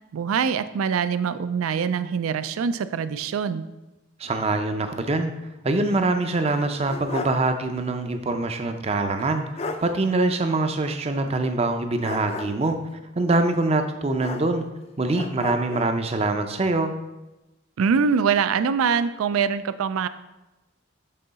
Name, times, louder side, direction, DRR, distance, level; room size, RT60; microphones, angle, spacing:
voice 1, 0.1-3.6 17.8-20.1, right 6 dB, 90° right, 13 dB, 0.4 m, -23 dB
voice 2, 4.2-5.3 5.6-9.5 9.8-12.8 13.2-14.6 15.0-16.9, right 2 dB, 30° right, 7 dB, 0.5 m, -24 dB
sound 1, 6.5-7.5 7.8-7.9 9.2-9.3 9.6-9.9 12.0-12.7 14.2-14.8 15.1-15.9, left 3 dB, 30° left, 0.3 m, -34 dB
7.6 x 3.8 x 4.0 m, 1.0 s
head